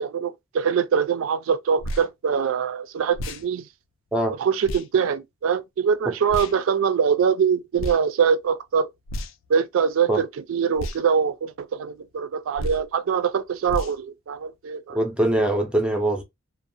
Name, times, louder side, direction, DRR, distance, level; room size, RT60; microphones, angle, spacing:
voice 1, 0.0-3.6 4.4-8.9 9.5-15.0, right 7 dB, 75° right, 0.4 m, -23 dB
sound 1, 1.8-2.1 3.1-3.4 4.6-4.9 6.3-6.6 7.8-8.0 9.1-9.5 10.8-11.0 12.6-12.9 13.7-14.0, left 1 dB, 65° left, 0.4 m, -31 dB
voice 2, 14.9-16.2, right 1 dB, 5° right, 0.4 m, -22 dB
2.5 x 2.0 x 2.5 m
head